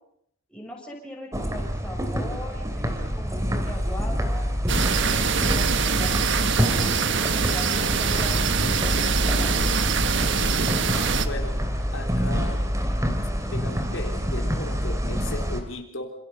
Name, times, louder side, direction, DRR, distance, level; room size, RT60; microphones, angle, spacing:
voice 1, 0.5-4.5 5.0-9.9, equal, 5° left, -1 dB, 7.0 m, -40 dB
sound 1, 1.3-15.6, equal, 15° right, 3.0 m, -27 dB
sound 2, 4.7-11.3, right 6 dB, 60° right, 1.4 m, -24 dB
voice 2, 11.2-11.7 11.9-12.6 13.5-16.1, left 2 dB, 70° left, 2 dB, 3.6 m, -36 dB
28.0 x 27.5 x 5.5 m, 0.73 s
head